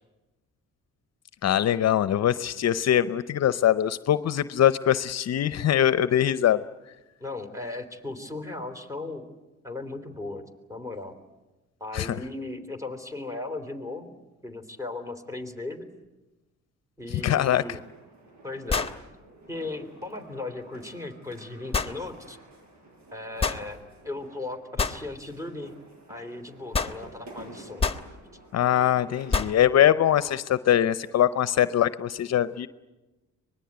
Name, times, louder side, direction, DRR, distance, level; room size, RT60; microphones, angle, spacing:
voice 1, 1.4-6.6 11.9-12.2 17.2-17.6 28.5-32.7, left 11 dB, 60° left, 14 dB, 0.8 m, -22 dB
voice 2, 7.2-9.3 9.6-11.1 11.8-15.9 17.0-17.8 18.4-18.9 19.5-22.4 23.1-25.7 26.1-27.9, left 2 dB, 10° right, 5 dB, 3.5 m, -37 dB
sound 1, 17.3-29.4, right 2 dB, 65° right, 7.8 m, -50 dB
sound 2, 17.5-17.6 18.7-19.0 21.7-22.0 23.4-23.6 24.8-25.0 26.7-27.0 27.8-28.1 29.3-29.6, left 5 dB, 20° left, 1.3 m, -26 dB
24.0 x 20.5 x 9.5 m, 1.1 s
cardioid pair, 90°, 30 cm